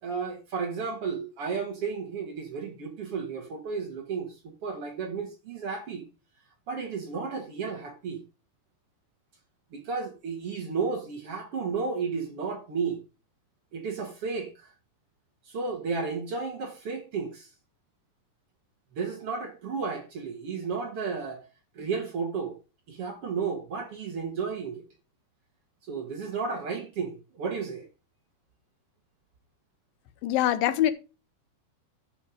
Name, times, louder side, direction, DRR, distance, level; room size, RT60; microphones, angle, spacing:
voice 1, 0.0-6.0 6.7-8.2 9.7-13.0 13.7-14.7 15.5-17.5 18.9-21.5 21.7-22.6 22.9-24.8 25.9-27.9, right 5 dB, 55° right, 1.7 m, -33 dB
voice 2, 30.2-30.9, left 12 dB, 75° left, 2.4 m, -23 dB
11.5 x 5.9 x 5.0 m
omnidirectional pair, 4.6 m